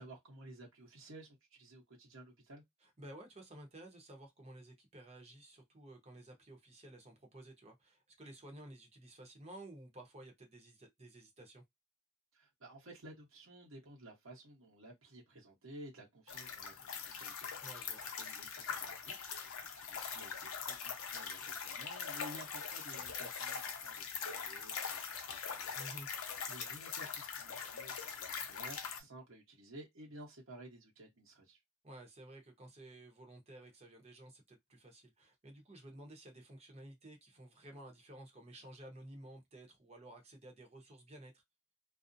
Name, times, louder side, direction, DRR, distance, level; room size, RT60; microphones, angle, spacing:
voice 1, 0.0-2.6 12.3-17.7 18.0-25.9 26.4-31.6, right 1 dB, 70° right, 1.0 m, -54 dB
voice 2, 2.8-11.6 17.6-18.0 25.7-26.1 31.8-41.4, right 1 dB, 30° right, 0.8 m, -54 dB
sound 1, 16.3-29.0, left 6 dB, 85° left, 0.6 m, -42 dB
2.4 x 2.0 x 2.6 m
head